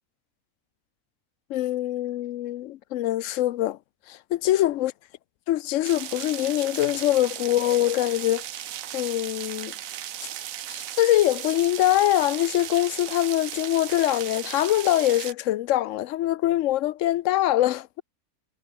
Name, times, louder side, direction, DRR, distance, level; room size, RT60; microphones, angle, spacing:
voice 1, 1.5-3.8 4.1-4.9 5.5-8.4 8.9-9.7 10.7-18.0, left 14 dB, 70° left, 0.8 m, -23 dB
sound 1, 5.8-15.3, right 11 dB, 65° right, 1.2 m, -36 dB
omnidirectional pair, 1.6 m